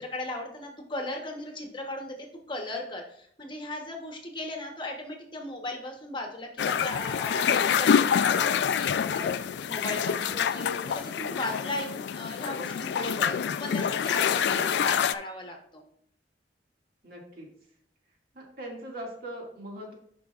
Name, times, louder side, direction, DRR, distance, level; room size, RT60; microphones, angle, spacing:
voice 1, 0.0-15.8, left 2 dB, 25° left, 2 dB, 1.0 m, -37 dB
sound 1, 6.6-15.2, left 7 dB, 70° left, 0.3 m, -26 dB
voice 2, 10.0-10.4 14.5-14.9 17.0-17.5 18.3-19.9, right 1 dB, 55° right, -2 dB, 2.2 m, -41 dB
11.0 x 5.3 x 2.4 m, 0.65 s
head